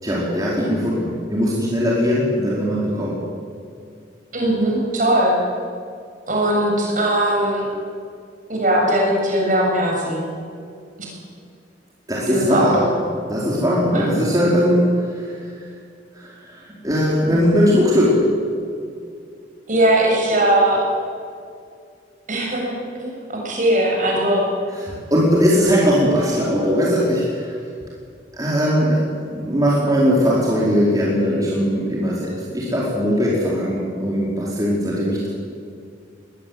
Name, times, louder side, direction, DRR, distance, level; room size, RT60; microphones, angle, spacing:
voice 1, 0.0-3.2 12.1-12.8 13.3-15.7 16.1-18.2 24.8-27.5 28.3-35.3, equal, 20° right, -6 dB, 4.7 m, -19 dB
voice 2, 4.3-5.4 6.3-7.7 8.5-10.3 12.3-12.9 13.9-14.0 19.7-20.9 22.3-22.7 23.0-24.5, right 1 dB, 45° right, -1 dB, 7.2 m, -19 dB
21.5 x 18.0 x 9.7 m, 2.3 s
head